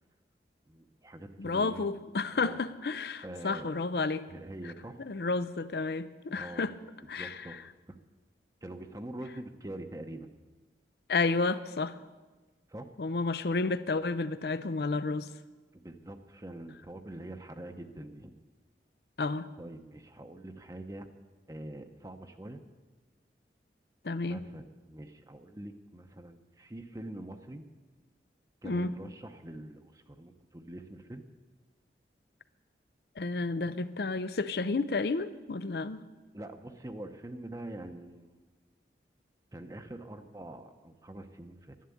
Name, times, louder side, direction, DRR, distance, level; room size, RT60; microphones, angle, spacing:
voice 1, 0.7-2.0 2.3-2.6 3.2-3.7 4.3-5.0 6.3-6.7 7.2-7.7 8.6-10.3 12.7-12.9 15.7-18.3 19.6-21.1 21.5-22.6 24.2-27.6 28.6-31.2 36.3-38.3 39.5-41.8, right 1 dB, 20° right, 6 dB, 0.7 m, -44 dB
voice 2, 1.4-4.2 5.0-6.7 7.1-7.4 11.1-12.0 13.0-15.3 19.2-19.5 24.0-24.4 28.6-29.0 33.2-36.0, left 3 dB, 65° left, 14 dB, 0.5 m, -31 dB
12.0 x 11.5 x 8.5 m, 1.3 s
head